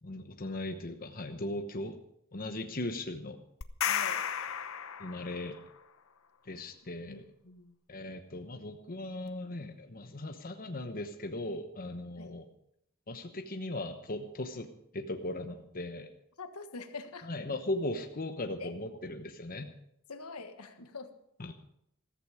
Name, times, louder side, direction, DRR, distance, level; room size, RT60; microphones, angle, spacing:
voice 1, 0.0-2.0 2.3-3.4 5.0-5.6 6.5-7.3 7.9-12.5 13.1-14.7 14.9-16.1 17.2-19.7 21.4-21.5, left 1 dB, 40° left, 6 dB, 1.0 m, -38 dB
sound 1, 3.6-5.6, left 9 dB, 65° left, 0.9 m, -33 dB
voice 2, 3.9-4.3 7.1-7.7 12.2-12.3 16.4-17.3 18.6-18.7 20.1-21.1, left 4 dB, 80° left, 8 dB, 1.4 m, -45 dB
15.0 x 14.0 x 4.9 m, 0.73 s
head